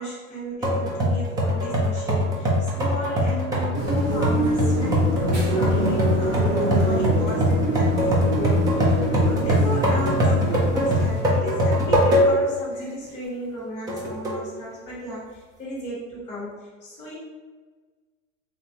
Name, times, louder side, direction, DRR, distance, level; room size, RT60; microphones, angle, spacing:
voice 1, 0.0-17.1, equal, 15° left, -10 dB, 1.1 m, -34 dB
sound 1, 0.6-12.6 13.0-13.1 13.9-14.5, equal, 10° right, 0.4 m, -22 dB
sound 2, 3.7-11.2, right 1 dB, 25° right, 0.8 m, -26 dB
4.1 x 3.4 x 2.8 m, 1.4 s
supercardioid pair, 150°, 39 cm